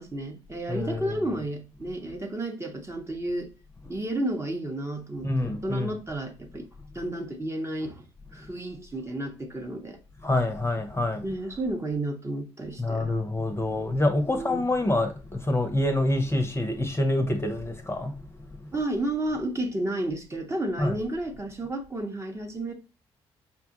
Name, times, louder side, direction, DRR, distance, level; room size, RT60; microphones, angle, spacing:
voice 1, 0.0-3.5 3.9-6.7 6.9-8.1 8.3-10.0 11.2-13.1 14.3-14.6 18.7-22.7, right 1 dB, 20° right, 0.9 m, -32 dB
voice 2, 0.7-1.4 3.8-3.9 5.2-5.9 8.4-8.5 10.2-11.3 12.8-18.8 20.8-21.0, left 1 dB, 20° left, 0.8 m, -27 dB
5.4 x 2.2 x 2.9 m
figure-of-eight pair, 40°, 14 cm